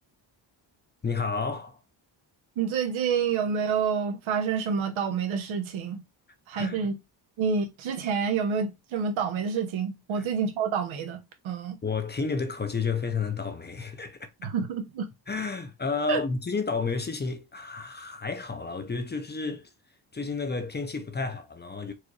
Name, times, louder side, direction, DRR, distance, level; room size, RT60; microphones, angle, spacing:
voice 1, 1.0-1.8 6.5-6.9 10.2-10.3 11.8-14.5 15.3-19.7 20.1-21.9, left 4 dB, 20° left, 0.6 m, -31 dB
voice 2, 2.6-6.0 6.5-7.0 7.4-11.2 11.4-11.8 14.4-15.1 16.1-16.2, right 6 dB, 90° right, 1.0 m, -28 dB
4.5 x 2.5 x 3.1 m
cardioid pair, 95°, 46 cm